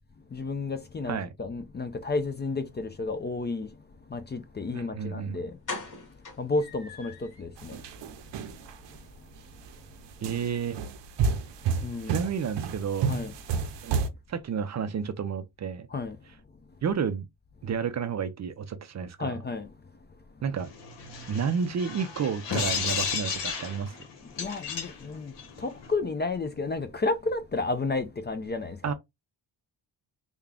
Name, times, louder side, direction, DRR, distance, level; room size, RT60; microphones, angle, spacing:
voice 1, 0.3-3.7 4.1-5.5 6.4-7.1 7.4-7.7 11.8-12.1 13.1-13.3 15.9-16.1 19.2-19.7 24.4-25.3 25.6-28.9, left 3 dB, 25° left, 0.4 m, -31 dB
voice 2, 4.7-5.4 10.2-10.8 12.1-13.2 13.8-15.9 16.8-17.3 17.6-19.4 20.4-20.7 21.3-24.0 28.8-28.9, right 6 dB, 40° right, 0.4 m, -31 dB
sound 1, 5.0-5.1 5.6-7.4 7.8-7.9 8.3-8.4 8.7-8.8, left 3 dB, 45° left, 1.6 m, -40 dB
sound 2, 7.6-9.0 9.5-9.8 10.2-14.1, right 5 dB, 75° right, 0.7 m, -30 dB
sound 3, 20.6-25.9, left 6 dB, 70° left, 1.1 m, -33 dB
3.6 x 2.2 x 3.4 m
cardioid pair, 105°, 44 cm